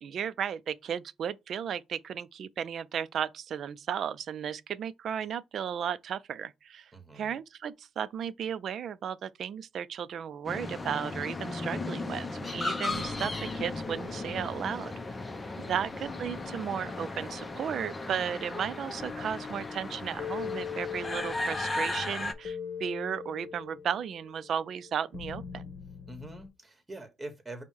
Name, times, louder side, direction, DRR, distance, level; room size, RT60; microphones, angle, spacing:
voice 1, 0.0-14.9 15.6-25.7, right 8 dB, 65° right, 0.4 m, -35 dB
voice 2, 6.9-7.4 15.8-16.0 26.1-27.6, right 1 dB, 20° right, 1.4 m, -44 dB
sound 1, 10.4-22.3, left 2 dB, 25° left, 0.6 m, -36 dB
sound 2, 12.9-15.5 16.1-26.5, left 6 dB, 50° left, 1.0 m, -43 dB
5.3 x 2.1 x 4.6 m
cardioid pair, 90°, 0 cm